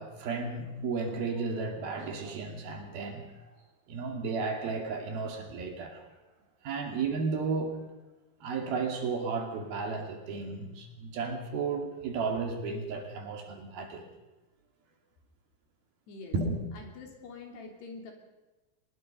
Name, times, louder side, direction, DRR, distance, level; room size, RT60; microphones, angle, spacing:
voice 1, 0.0-3.3 3.9-6.0 6.6-7.8 8.4-14.0 16.3-16.5, right 4 dB, 60° right, 3 dB, 4.0 m, -33 dB
voice 2, 16.7-18.1, left 4 dB, 65° left, 2 dB, 5.1 m, -45 dB
24.0 x 20.5 x 5.3 m, 1.1 s
omnidirectional pair, 5.2 m